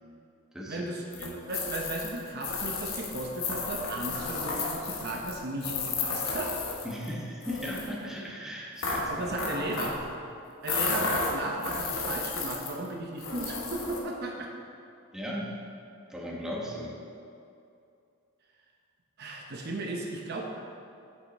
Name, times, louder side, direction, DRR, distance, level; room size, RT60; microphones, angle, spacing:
voice 1, 0.7-6.5 9.1-10.0 10.6-14.5 19.2-20.4, right 2 dB, 50° right, 0 dB, 0.8 m, -35 dB
sound 1, 1.1-7.1 7.4-7.9 8.8-10.0 10.6-12.9 13.2-14.0, left 4 dB, 70° left, 1.3 m, -33 dB
voice 2, 6.8-9.1 10.9-11.2 15.1-15.5 16.1-16.9, equal, 5° right, -5 dB, 1.2 m, -37 dB
8.0 x 7.6 x 4.2 m, 2.6 s
head